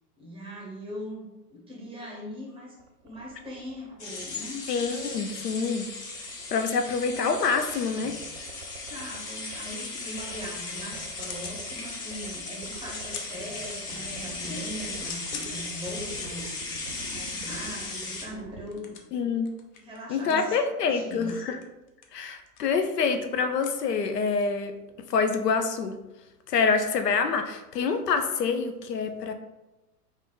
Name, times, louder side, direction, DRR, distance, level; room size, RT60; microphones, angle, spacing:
voice 1, 0.2-2.8 3.0-4.6 8.8-16.6 17.1-19.0 19.7-20.6 20.8-21.3, equal, 10° right, -2 dB, 1.0 m, -40 dB
sound 1, 2.8-18.6, right 5 dB, 40° right, 0.6 m, -47 dB
sound 2, 4.0-18.2, left 3 dB, 50° left, 1.2 m, -37 dB
voice 2, 4.7-5.9 6.5-8.1 19.1-19.5 20.1-21.6 22.1-24.8 25.1-26.0 26.5-29.3, left 5 dB, 85° left, 7 dB, 0.6 m, -26 dB
sound 3, 11.1-11.6 12.0-12.4 12.8-14.0 14.4-24.5, left 6 dB, 30° left, 0.4 m, -45 dB
3.6 x 2.6 x 3.8 m, 1.0 s
hypercardioid pair, 110°, 47 cm